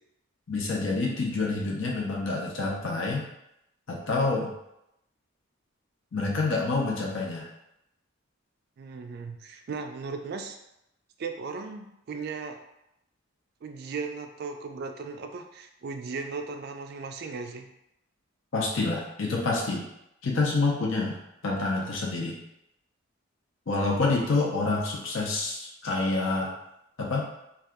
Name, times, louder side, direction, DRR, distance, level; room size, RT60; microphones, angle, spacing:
voice 1, 0.5-3.2 3.9-4.5 6.1-7.5 18.5-19.8 20.2-21.2 21.4-22.4 23.7-26.5 27.0-27.3, left 3 dB, 60° left, -3 dB, 0.6 m, -27 dB
voice 2, 8.8-10.6 11.2-12.6 13.6-17.7, right 4 dB, 50° right, 5 dB, 0.3 m, -37 dB
2.7 x 2.3 x 3.5 m, 0.83 s
head